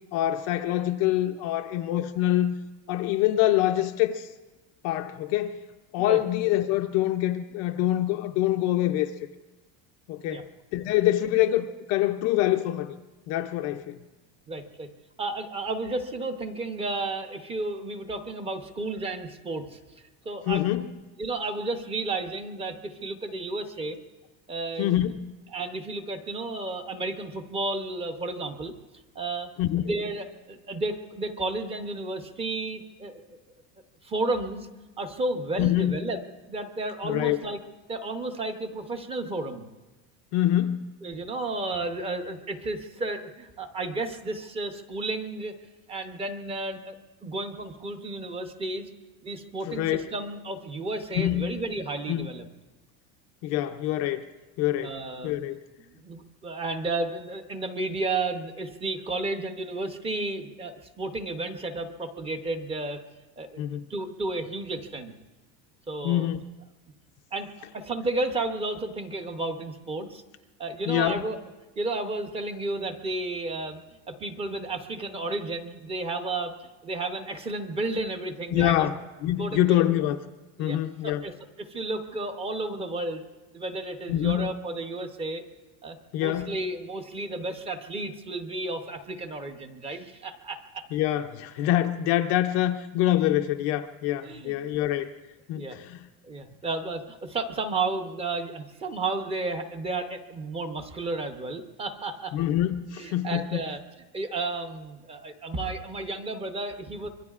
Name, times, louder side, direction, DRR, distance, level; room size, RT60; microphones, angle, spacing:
voice 1, 0.1-2.5 2.9-4.3 4.8-5.6 5.9-9.1 10.1-10.4 10.7-13.0 13.3-14.0 20.5-20.9 24.8-25.2 29.6-29.8 35.6-36.0 37.0-37.5 40.3-40.9 49.7-50.1 51.1-51.6 52.1-52.3 53.4-54.2 54.6-54.9 55.2-55.6 63.6-63.8 66.0-66.4 70.9-71.2 78.5-80.2 80.6-81.2 84.1-84.5 86.1-86.6 90.9-95.1 95.5-96.0 102.3-103.6, left 13 dB, 40° left, 0.4 m, -25 dB
voice 2, 14.5-14.9 15.2-20.7 21.2-24.0 24.5-25.0 25.5-28.7 29.1-29.5 29.8-33.4 34.0-34.7 35.0-36.2 36.5-37.6 37.9-39.7 41.0-45.5 45.9-46.9 47.2-48.9 49.2-52.5 54.8-55.3 55.8-63.0 63.4-63.6 63.9-65.1 65.9-66.3 67.3-70.2 70.6-71.4 71.8-73.8 74.1-78.9 79.4-79.9 80.6-83.2 83.5-85.4 85.8-90.9 94.2-94.9 95.6-95.8 96.2-102.4 103.0-103.8 104.1-107.1, right 2 dB, 15° right, 0.7 m, -32 dB
25.5 x 22.5 x 2.4 m
cardioid pair, 175°, 40 cm